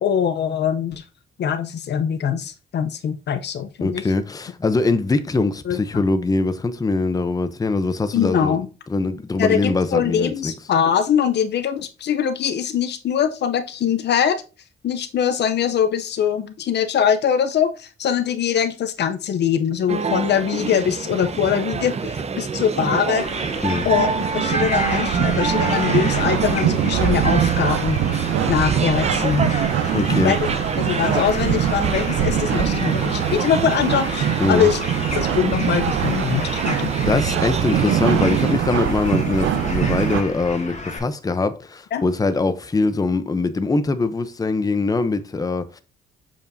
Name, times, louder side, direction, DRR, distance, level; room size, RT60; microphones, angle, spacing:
voice 1, 0.0-1.0 1.4-4.1 5.7-6.0 8.1-8.7 9.4-14.4 14.8-23.3 23.8-24.1 24.3-28.0 28.5-29.5 30.1-30.4 30.8-34.8 35.1-37.2 41.9-42.0, left 8 dB, 60° left, 0.7 m, -22 dB
voice 2, 3.8-8.6 8.9-10.5 23.6-23.9 29.9-30.3 34.4-34.7 36.6-36.7 37.1-45.8, left 3 dB, 20° left, 0.7 m, -22 dB
sound 1, 19.9-38.5, right 5 dB, 35° right, 0.7 m, -27 dB
sound 2, 23.2-41.0, left 3 dB, 35° left, 2.0 m, -33 dB
sound 3, 23.5-40.2, right 10 dB, 75° right, 0.6 m, -23 dB
6.9 x 5.1 x 2.7 m
cardioid pair, 90°, 20 cm